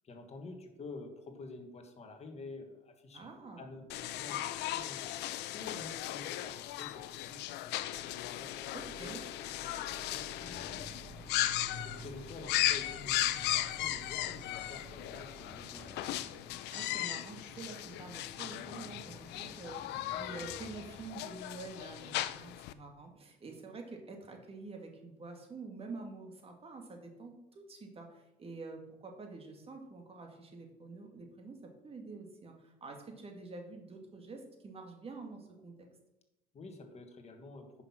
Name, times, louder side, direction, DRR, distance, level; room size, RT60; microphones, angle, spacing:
voice 1, 0.0-3.3 3.6-5.1 5.5-11.1 11.8-15.9 36.5-37.7, left 3 dB, 40° left, 5 dB, 1.6 m, -49 dB
voice 2, 3.1-3.7 8.7-9.2 16.7-35.9, right 3 dB, 35° right, 3 dB, 2.1 m, -47 dB
sound 1, 3.9-22.7, left 14 dB, 85° left, 0.6 m, -37 dB
sound 2, 7.9-16.1, right 5 dB, 55° right, 1.0 m, -56 dB
sound 3, 10.3-21.1, left 1 dB, 15° left, 1.8 m, -52 dB
9.8 x 5.9 x 5.9 m, 0.92 s
cardioid pair, 110°, 17 cm